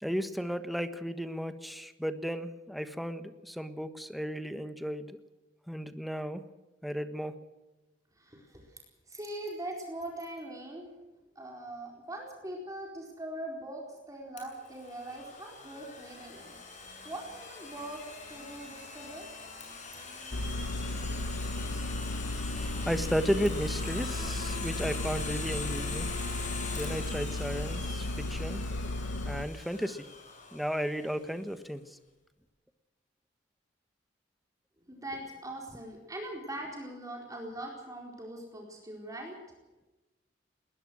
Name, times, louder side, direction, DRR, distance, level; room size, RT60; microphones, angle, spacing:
voice 1, 0.0-5.2 5.7-6.4 6.8-7.3 22.8-26.1 26.7-28.6 29.2-30.0 30.5-31.8, equal, ahead, 9 dB, 1.3 m, -34 dB
voice 2, 8.1-8.8 9.1-10.9 11.3-16.5 17.0-18.0 18.3-19.3 20.5-20.6 34.8-39.4, right 1 dB, 20° right, 0 dB, 4.4 m, -41 dB
Domestic sounds home sounds, 14.4-31.1, left 4 dB, 40° left, 7.5 m, -42 dB
Engine, 20.3-29.4, left 1 dB, 80° left, 1.1 m, -35 dB
21.0 x 20.0 x 6.3 m, 1.1 s
head